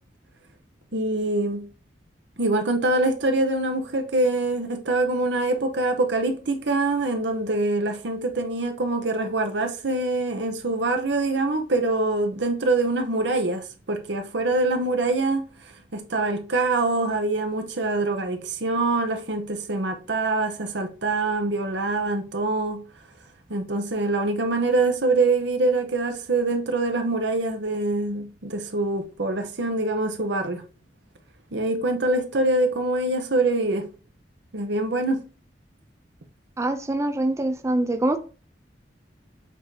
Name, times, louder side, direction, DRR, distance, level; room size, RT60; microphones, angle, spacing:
voice 1, 0.9-1.7 2.4-15.5 15.9-22.8 23.5-30.6 31.5-33.9 34.5-35.3, right 2 dB, 75° right, 1.0 m, -24 dB
voice 2, 36.6-38.2, right 1 dB, 15° right, 0.4 m, -24 dB
7.3 x 2.8 x 4.8 m
head